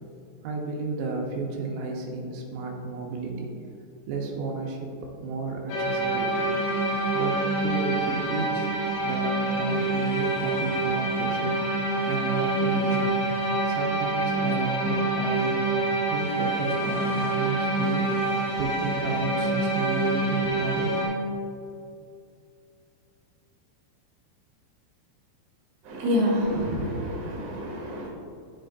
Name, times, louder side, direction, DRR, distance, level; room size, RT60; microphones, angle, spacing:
voice 1, 0.4-3.5 4.1-6.5 7.1-8.8 9.0-11.6 12.0-13.2 13.7-15.6 16.1-18.3 18.6-20.9, right 4 dB, 85° right, -1 dB, 3.4 m, -32 dB
sound 1, 5.7-21.1, right 2 dB, 90° left, 4.0 m, -26 dB
voice 2, 25.8-28.1, equal, 50° right, -5 dB, 2.7 m, -27 dB
13.5 x 5.1 x 2.5 m, 2.5 s
omnidirectional pair, 5.8 m